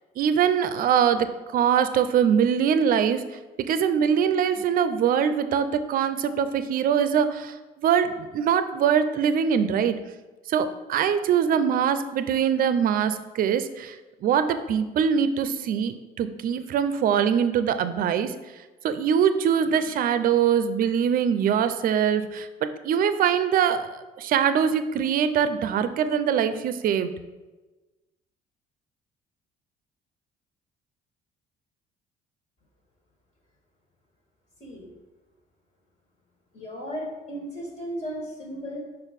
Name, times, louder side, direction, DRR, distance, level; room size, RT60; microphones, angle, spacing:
voice 1, 0.2-1.3 1.5-3.2 3.7-10.0 10.5-14.0 14.2-18.3 18.8-27.1, right 8 dB, 60° right, 11 dB, 0.5 m, -23 dB
voice 2, 36.5-38.8, equal, 45° left, -2 dB, 1.9 m, -35 dB
5.2 x 4.6 x 5.2 m, 1.2 s
cardioid pair, 110°, 17 cm